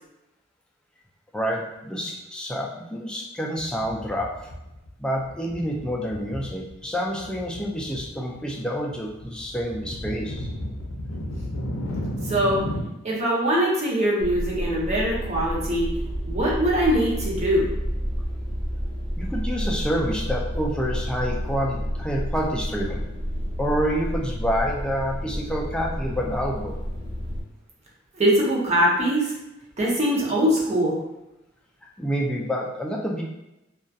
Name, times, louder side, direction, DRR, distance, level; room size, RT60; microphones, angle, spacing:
voice 1, 1.3-4.3 5.0-10.5 19.2-23.0 23.6-26.8 32.0-33.2, equal, 5° left, -2 dB, 0.3 m, -28 dB
sound 1, 3.6-4.9 5.1-6.8 7.1-8.0 8.3-12.8, equal, 80° left, 0.5 m, -34 dB
voice 2, 12.2-12.6 13.0-15.9 16.3-17.7 28.1-29.4 29.8-31.0, equal, 35° right, -4 dB, 0.7 m, -22 dB
sound 2, 14.2-27.4, equal, 25° left, 0.7 m, -30 dB
2.6 x 2.3 x 2.3 m, 0.93 s
head